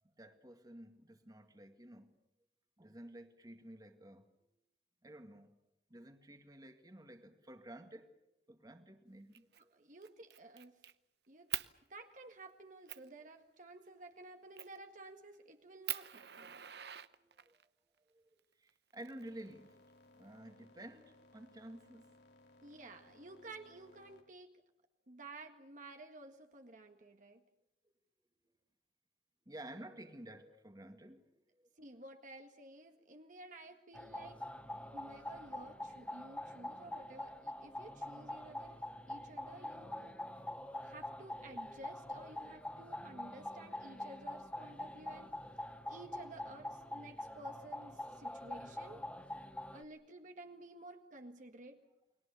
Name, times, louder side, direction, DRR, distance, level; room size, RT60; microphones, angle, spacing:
voice 1, 0.2-2.1 2.8-4.3 5.0-5.5 5.9-8.1 8.5-9.5 17.2-17.7 18.1-19.8 20.1-22.2 29.5-31.7 48.2-48.3, right 1 dB, 20° right, 2.1 m, -52 dB
Fire, 9.3-9.6 10.0-10.9 11.5-11.7 12.3-12.4 12.9-13.1 14.6-14.8 15.3-15.4 15.9-17.6 18.7-19.7, right 13 dB, 65° right, 0.9 m, -43 dB
voice 2, 9.7-10.8 11.3-11.5 11.9-16.6 22.6-24.6 25.1-27.4 31.8-34.5 34.9-40.2 40.8-45.4 45.9-49.0 49.7-51.8, right 2 dB, 45° right, 1.8 m, -53 dB
sound 1, 19.2-24.2, left 2 dB, 80° left, 4.4 m, -64 dB
sound 2, 33.9-49.8, left 1 dB, 5° left, 0.9 m, -45 dB
30.0 x 21.5 x 7.0 m
head